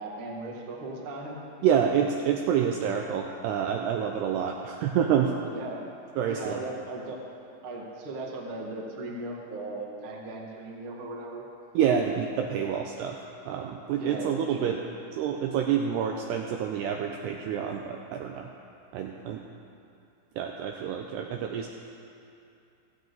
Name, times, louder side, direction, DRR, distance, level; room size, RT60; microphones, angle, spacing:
voice 1, 0.0-1.4 5.4-5.8 6.3-7.2 7.6-11.4 13.9-14.8, right 2 dB, 65° right, -2 dB, 1.3 m, -37 dB
voice 2, 1.6-5.3 6.2-6.7 11.7-14.8 15.2-18.5 18.9-19.4 20.4-21.7, right 8 dB, 90° right, 2 dB, 2.4 m, -28 dB
17.0 x 15.5 x 4.0 m, 2.6 s
omnidirectional pair, 5.6 m